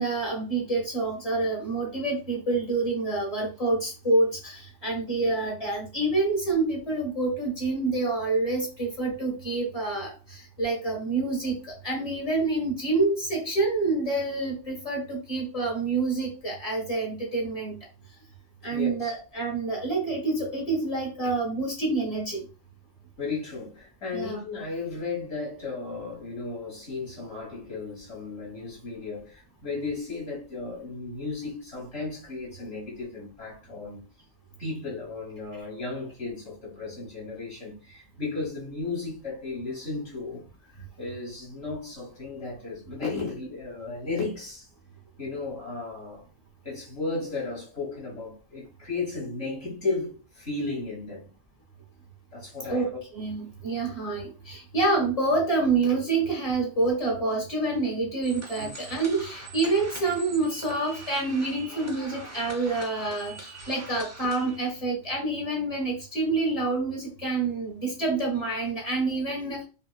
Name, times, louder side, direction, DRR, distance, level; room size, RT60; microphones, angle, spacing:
voice 1, 0.0-17.7 18.6-22.4 24.1-24.4 52.7-52.9 53.1-69.6, right 3 dB, 30° left, 1.5 m, -27 dB
voice 2, 18.7-19.1 23.2-34.0 34.6-44.7 45.2-46.3 46.6-51.3 52.3-52.9 58.6-58.7, left 3 dB, 50° left, 1.8 m, -34 dB
sound 1, 58.2-64.6, right 2 dB, 25° right, 0.3 m, -43 dB
5.2 x 2.3 x 2.3 m
omnidirectional pair, 1.4 m